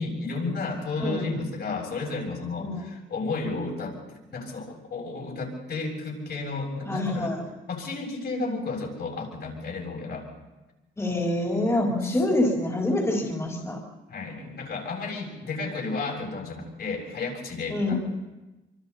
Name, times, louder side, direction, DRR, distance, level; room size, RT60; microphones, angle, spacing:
voice 1, 0.0-3.9 4.3-7.3 7.7-10.3 12.0-12.1 14.1-18.0, left 3 dB, 55° left, -1 dB, 7.4 m, -32 dB
voice 2, 6.8-7.4 11.0-13.8 17.7-18.0, left 1 dB, 15° left, -1 dB, 4.0 m, -26 dB
25.5 x 25.0 x 4.2 m, 1.1 s
cardioid pair, 90°, 20 cm